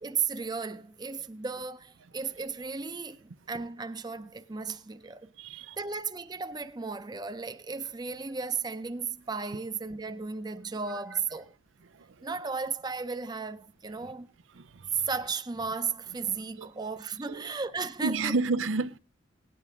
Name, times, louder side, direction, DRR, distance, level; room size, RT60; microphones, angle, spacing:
voice 1, 0.0-11.5 12.2-14.3 14.9-18.4, right 5 dB, 20° right, 0.6 m, -35 dB
voice 2, 5.4-5.8 10.9-11.0 11.9-12.3 14.5-15.1 16.6-16.7 17.3-17.5 18.0-19.0, right 3 dB, 90° right, 0.6 m, -31 dB
18.5 x 10.0 x 3.6 m
head